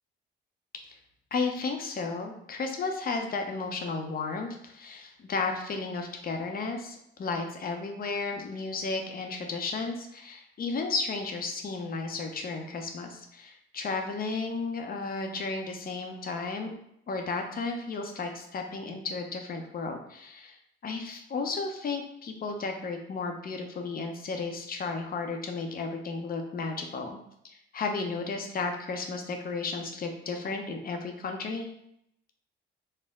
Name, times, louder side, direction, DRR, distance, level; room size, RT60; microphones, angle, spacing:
voice 1, 1.3-16.7 17.1-20.6 20.8-27.2 27.4-31.7, left 4 dB, 50° left, 4 dB, 0.7 m, -33 dB
4.4 x 2.1 x 3.6 m, 0.74 s
cardioid pair, 90°, 20 cm